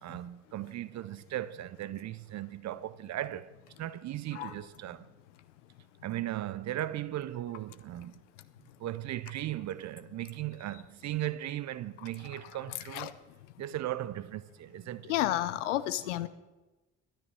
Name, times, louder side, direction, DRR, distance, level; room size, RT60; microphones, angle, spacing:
voice 1, 0.0-3.5 3.8-5.1 6.0-8.2 8.8-13.1 13.6-15.1, right 13 dB, 50° right, 0.6 m, -37 dB
voice 2, 15.1-16.3, left 14 dB, 85° left, 0.7 m, -31 dB
13.0 x 6.5 x 8.8 m
hypercardioid pair, 50°, 36 cm